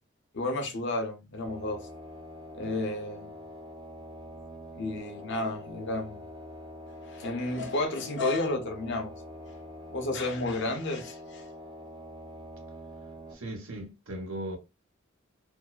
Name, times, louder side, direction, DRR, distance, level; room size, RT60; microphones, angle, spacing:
voice 1, 0.3-1.9 2.5-3.3 4.7-6.3 7.1-9.1 9.9-11.5, left 2 dB, 60° left, 0.7 m, -32 dB
sound 1, 1.4-13.3, equal, 20° right, 0.4 m, -45 dB
voice 2, 13.3-14.6, right 1 dB, 75° right, 0.9 m, -37 dB
2.7 x 2.0 x 2.3 m
head